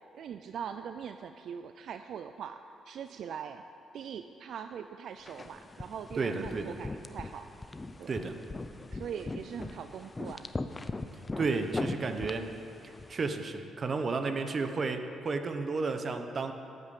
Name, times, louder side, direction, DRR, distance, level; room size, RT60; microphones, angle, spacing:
voice 1, 0.1-3.6 3.9-7.5 8.0-8.2 8.9-10.5, right 7 dB, 70° right, 9 dB, 0.4 m, -41 dB
sound 1, 5.3-13.4, left 2 dB, 25° left, 0.6 m, -40 dB
voice 2, 6.2-6.8 8.1-8.4 11.4-12.5 13.1-16.5, right 4 dB, 40° right, 7 dB, 1.0 m, -32 dB
9.4 x 9.1 x 8.4 m, 2.6 s
cardioid pair, 90°, 0 cm